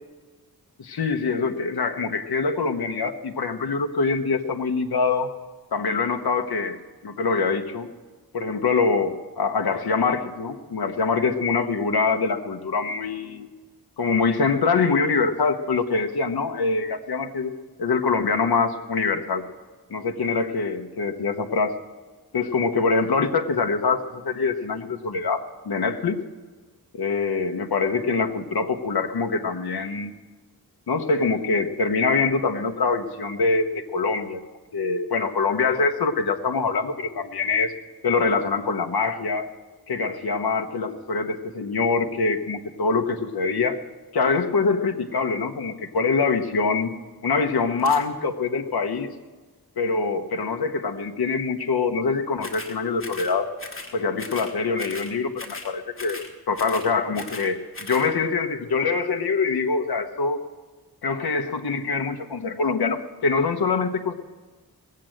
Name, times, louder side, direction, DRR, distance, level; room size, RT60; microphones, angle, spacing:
voice 1, 0.8-5.3 5.7-6.8 7.0-7.9 8.3-13.5 14.0-17.5 17.8-19.4 19.9-21.8 22.3-24.0 24.2-25.4 25.7-26.2 26.9-30.1 30.9-33.6 33.9-34.4 34.7-37.7 38.0-39.5 39.9-43.8 44.1-46.9 47.2-49.1 49.8-53.5 53.9-55.3 55.6-56.2 56.5-60.4 61.0-64.1, left 4 dB, 70° left, 5 dB, 1.0 m, -24 dB
sound 1, 47.8-48.0 52.4-52.7 53.0-53.3 53.6-53.9 54.2-54.5 54.8-55.1 55.4-55.7 56.0-56.3 56.5-57.5 57.7-58.1, left 3 dB, 35° left, 2.1 m, -38 dB
19.0 x 7.6 x 7.7 m, 1.3 s
wide cardioid pair, 100°, 39 cm